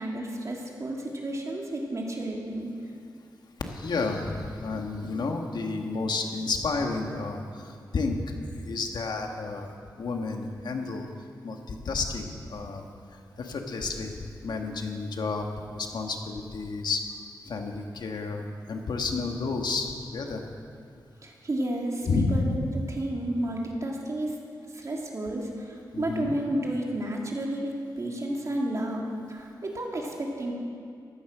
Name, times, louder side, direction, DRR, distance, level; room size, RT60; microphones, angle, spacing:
voice 1, 0.0-2.7 21.2-22.6 22.9-24.3 24.7-30.5, right 1 dB, 45° right, -1 dB, 2.8 m, -31 dB
voice 2, 3.7-9.7 10.0-11.1 11.4-12.8 13.1-17.0 17.4-20.5 22.0-22.4 25.9-26.3, left 3 dB, 75° left, 3 dB, 1.6 m, -31 dB
15.0 x 13.5 x 6.2 m, 2.3 s
wide cardioid pair, 95°, 7 cm